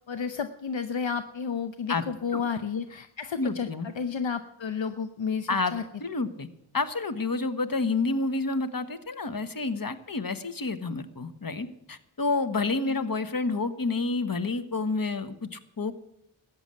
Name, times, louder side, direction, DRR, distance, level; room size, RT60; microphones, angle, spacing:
voice 1, 0.1-5.8 12.7-13.0, left 6 dB, 65° left, 10 dB, 0.8 m, -32 dB
voice 2, 3.4-3.9 5.5-5.7 6.0-6.5 6.7-15.9, left 3 dB, 45° left, 10 dB, 1.3 m, -29 dB
14.0 x 9.2 x 7.8 m, 0.85 s
cardioid pair, 40°, 48 cm